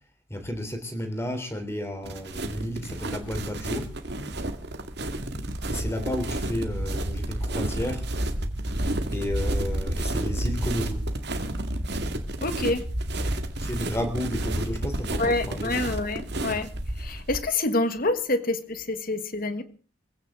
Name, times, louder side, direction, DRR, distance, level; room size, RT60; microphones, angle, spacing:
voice 1, 0.3-3.9 5.7-8.1 9.1-11.1 13.6-15.7, equal, 15° left, 6 dB, 3.4 m, -32 dB
sound 1, 2.0-17.4, right 1 dB, 55° right, 2.1 m, -30 dB
voice 2, 12.4-12.8 15.2-16.7 16.9-19.6, left 2 dB, 45° left, 10 dB, 1.6 m, -27 dB
23.5 x 16.0 x 3.8 m, 0.38 s
head